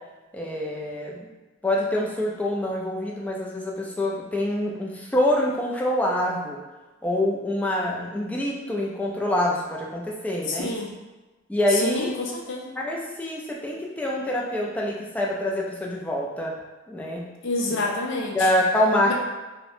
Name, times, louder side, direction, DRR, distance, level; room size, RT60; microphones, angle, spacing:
voice 1, 0.3-1.3 1.6-6.6 7.0-10.7 11.5-12.1 12.8-16.6 16.9-17.2 17.7-17.8 18.3-19.1, left 1 dB, 10° left, -3 dB, 0.3 m, -25 dB
voice 2, 10.5-10.9 11.7-12.7 17.4-18.5 19.1-19.2, left 2 dB, 65° left, -1 dB, 0.5 m, -28 dB
2.7 x 2.1 x 2.5 m, 1.2 s
head